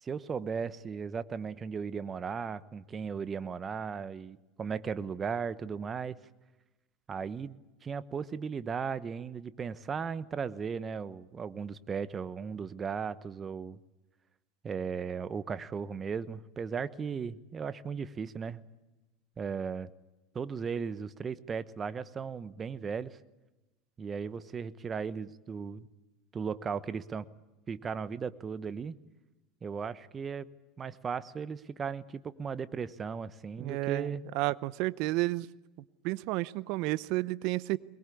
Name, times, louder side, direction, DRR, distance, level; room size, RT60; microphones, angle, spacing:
voice 1, 0.0-6.2 7.1-7.6 7.8-13.8 14.6-18.6 19.4-19.9 20.3-23.2 24.0-25.9 26.3-27.3 27.7-29.0 29.6-30.5 30.8-34.2, right 6 dB, 30° right, 15 dB, 1.1 m, -36 dB
voice 2, 33.6-35.5 36.0-37.8, right 19 dB, 60° right, 18 dB, 0.8 m, -31 dB
23.0 x 21.5 x 8.5 m, 1.0 s
hypercardioid pair, 85°, 0 cm